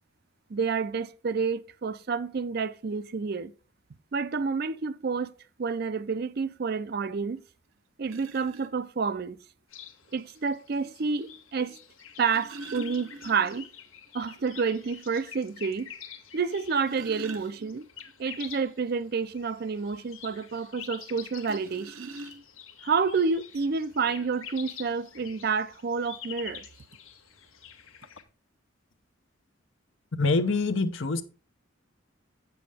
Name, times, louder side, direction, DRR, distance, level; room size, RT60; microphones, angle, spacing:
voice 1, 0.5-3.5 4.1-5.3 5.6-7.4 8.0-9.4 10.1-11.8 12.2-13.7 14.1-15.9 16.3-17.9 18.2-22.1 22.8-26.7, right 5 dB, 50° right, 0.5 m, -29 dB
sound 1, 7.4-7.5 8.0-8.7 10.1-10.2 12.0-13.7 14.1-14.2 14.6-14.7 15.2-15.3 16.5-18.0 21.4-22.7 23.6-23.7 24.1-24.3, right 2 dB, 85° right, 1.0 m, -44 dB
sound 2, 9.7-28.2, left 8 dB, 85° left, 1.2 m, -47 dB
voice 2, 30.2-31.2, left 3 dB, 70° left, 0.8 m, -25 dB
8.5 x 6.9 x 3.4 m
head